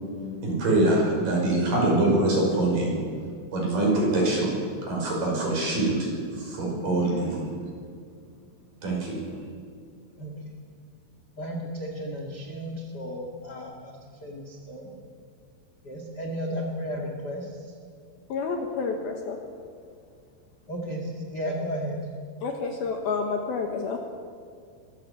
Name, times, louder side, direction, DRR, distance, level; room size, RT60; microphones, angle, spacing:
voice 1, 0.4-2.9 3.5-4.5 4.9-6.0 6.4-7.5 8.8-9.2, right 2 dB, 45° right, -2 dB, 7.0 m, -24 dB
voice 2, 11.4-13.9 14.2-14.9 15.8-17.4 20.7-22.0, equal, 45° left, 0 dB, 1.3 m, -33 dB
voice 3, 18.3-19.4 22.4-24.0, left 4 dB, 65° left, 3 dB, 2.7 m, -29 dB
24.0 x 15.5 x 8.4 m, 2.2 s
omnidirectional pair, 5.5 m